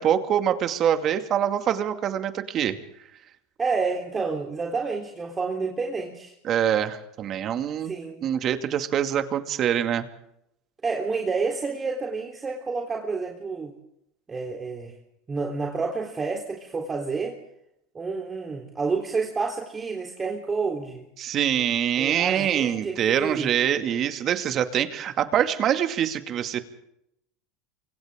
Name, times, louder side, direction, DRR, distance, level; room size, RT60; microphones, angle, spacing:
voice 1, 0.0-2.8 6.4-7.9 8.2-10.1 21.2-26.6, right 9 dB, 45° right, 8 dB, 2.3 m, -24 dB
voice 2, 3.6-6.3 7.8-8.3 10.8-13.7 14.3-14.9 15.3-17.4 17.9-21.0 22.0-23.5, right 4 dB, 20° right, 1 dB, 3.7 m, -29 dB
28.5 x 24.5 x 3.8 m, 0.79 s
hypercardioid pair, 95°, 0 cm